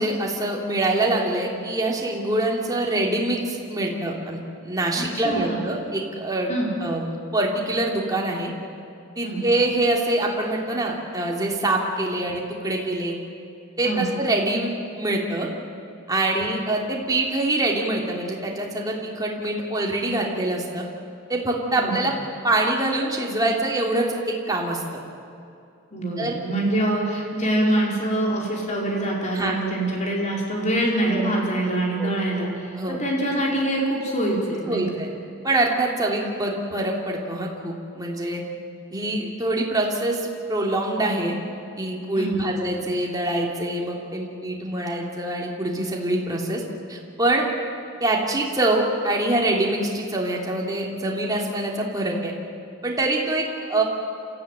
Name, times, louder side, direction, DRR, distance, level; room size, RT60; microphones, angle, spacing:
voice 1, 0.0-6.5 6.8-8.5 9.2-13.1 13.8-14.7 15.0-15.5 16.1-20.8 21.3-22.1 22.4-24.8 26.2-26.3 29.3-29.5 31.1-31.2 32.0-32.5 32.7-33.0 34.7-35.1 35.4-38.4 38.9-41.3 41.8-46.6 46.9-47.5 48.0-52.3 52.8-53.8, right 2 dB, 20° right, -1 dB, 3.0 m, -25 dB
voice 2, 5.0-5.7 6.5-6.7 9.2-9.4 13.8-14.1 21.7-22.1 25.9-35.0 42.2-42.5, right 1 dB, 35° left, -2 dB, 4.8 m, -25 dB
28.0 x 14.5 x 9.2 m, 2.5 s
head